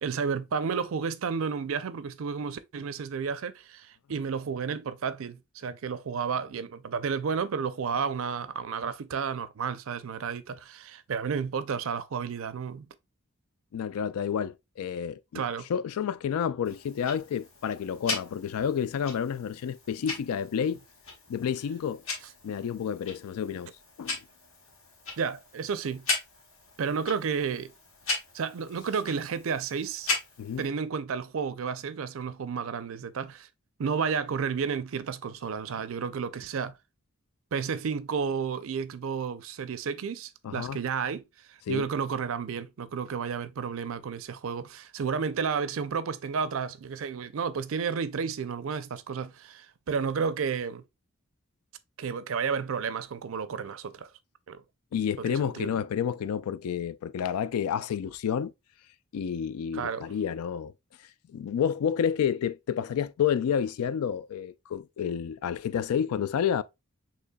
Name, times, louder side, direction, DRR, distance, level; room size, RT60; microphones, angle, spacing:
voice 1, 0.0-12.9 15.3-15.7 25.2-26.1 26.8-27.7 28.3-30.1 30.6-33.5 33.8-36.8 37.5-50.8 52.0-54.1 54.5-54.6 55.2-55.7 59.7-60.1, right 6 dB, 60° right, 0.4 m, -32 dB
voice 2, 13.7-15.4 15.7-20.8 21.3-22.0 22.4-23.7 24.0-24.2 30.4-30.6 40.4-40.8 41.7-41.9 54.9-58.5 59.1-60.7 61.3-66.6, left 8 dB, 80° left, 0.3 m, -30 dB
Tick-tock, 16.6-30.7, left 3 dB, 65° left, 1.4 m, -38 dB
6.5 x 3.0 x 2.2 m
head